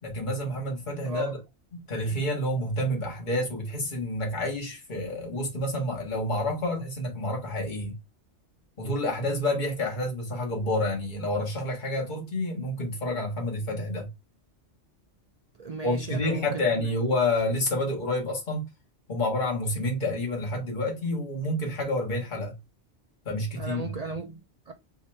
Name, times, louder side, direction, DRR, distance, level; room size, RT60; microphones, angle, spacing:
voice 1, 0.0-1.4 1.7-7.9 8.8-14.1 15.8-18.6 19.1-22.5 23.2-23.9, left 1 dB, 40° left, 1.6 m, -29 dB
voice 2, 1.0-1.3 15.6-16.9 23.6-24.7, right 4 dB, 55° right, 0.4 m, -36 dB
3.7 x 2.7 x 4.3 m
omnidirectional pair, 1.2 m